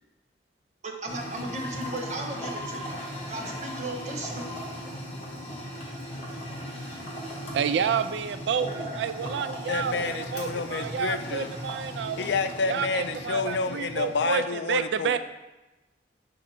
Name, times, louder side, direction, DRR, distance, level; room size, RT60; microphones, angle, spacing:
voice 1, 1.0-3.0 3.3-4.4, right 1 dB, 40° right, 0 dB, 1.0 m, -35 dB
sound 1, 1.1-14.2, equal, 35° left, 1.4 m, -38 dB
sound 2, 1.4-6.9, left 2 dB, 15° left, 0.5 m, -44 dB
voice 2, 7.5-12.2 12.7-15.2, right 7 dB, 75° right, 11 dB, 0.3 m, -29 dB
voice 3, 9.7-11.5 12.2-15.2, left 4 dB, 75° left, 9 dB, 0.4 m, -29 dB
5.5 x 3.6 x 5.8 m, 1.1 s
head